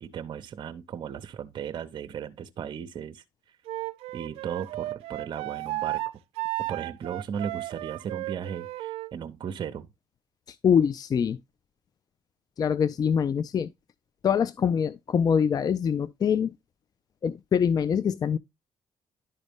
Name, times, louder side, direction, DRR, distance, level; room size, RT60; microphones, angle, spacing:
voice 1, 0.0-3.6 4.1-6.0 6.7-9.9, right 8 dB, 55° right, 0.7 m, -36 dB
Wind instrument woodwind instrument, 3.7-9.1, right 18 dB, 85° right, 0.4 m, -34 dB
voice 2, 10.5-11.4 12.6-13.7 14.2-16.5 17.2-18.4, left 7 dB, 40° left, 0.4 m, -24 dB
11.0 x 4.0 x 3.4 m
cardioid pair, 80°, 10 cm